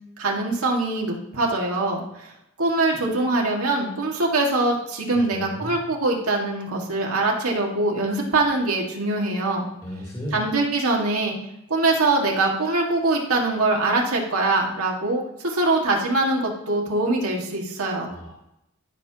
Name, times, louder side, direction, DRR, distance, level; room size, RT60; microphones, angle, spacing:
voice 1, 0.2-2.3 2.6-9.7 10.3-11.3 11.7-18.1, right 2 dB, 90° right, -1 dB, 1.8 m, -23 dB
voice 2, 5.1-5.7 9.8-10.4 18.1-18.3, equal, 15° left, -6 dB, 2.3 m, -34 dB
14.0 x 6.5 x 2.9 m, 0.84 s
head